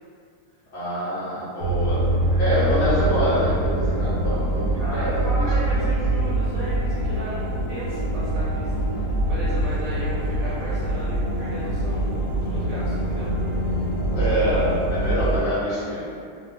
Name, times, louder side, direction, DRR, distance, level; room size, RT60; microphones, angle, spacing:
voice 1, 0.7-2.0 2.4-5.1 5.4-5.5 5.7-5.8 14.1-16.0, equal, 55° left, -12 dB, 0.8 m, -25 dB
sound 1, 1.6-15.4, right 1 dB, 75° left, 1.2 m, -24 dB
voice 2, 4.8-13.3, right 1 dB, 70° right, -9 dB, 0.9 m, -35 dB
2.6 x 2.4 x 2.5 m, 2.3 s
omnidirectional pair, 1.7 m